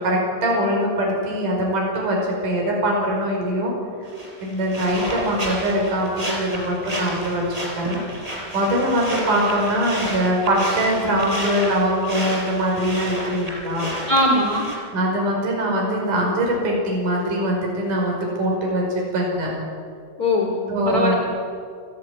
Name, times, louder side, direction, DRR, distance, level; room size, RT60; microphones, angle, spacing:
voice 1, 0.0-2.2 2.4-3.7 4.4-7.4 7.8-8.0 8.5-13.9 14.9-18.8 19.1-19.5 20.7-21.2, equal, 65° right, -1 dB, 6.7 m, -22 dB
sound 1, 4.1-14.8, equal, 10° right, 5.2 m, -31 dB
voice 2, 14.1-14.7 20.2-21.1, left 1 dB, 30° left, 1 dB, 2.8 m, -20 dB
30.0 x 13.5 x 9.4 m, 2.2 s
omnidirectional pair, 4.0 m